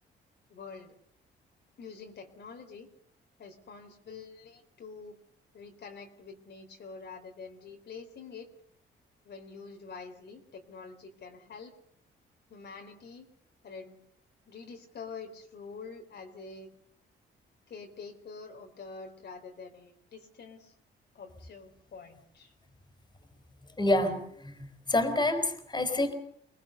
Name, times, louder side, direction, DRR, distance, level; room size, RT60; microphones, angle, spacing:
voice 1, 0.5-0.9 1.8-2.9 3.4-5.2 5.5-8.5 9.2-11.7 12.5-13.3 13.6-14.0 14.5-16.7 17.7-20.7 21.1-22.5, left 5 dB, 60° left, 3 dB, 4.0 m, -46 dB
voice 2, 23.8-26.1, left 2 dB, 20° left, 7 dB, 4.5 m, -28 dB
25.5 x 20.0 x 6.9 m, 0.67 s
cardioid pair, 90°, 20 cm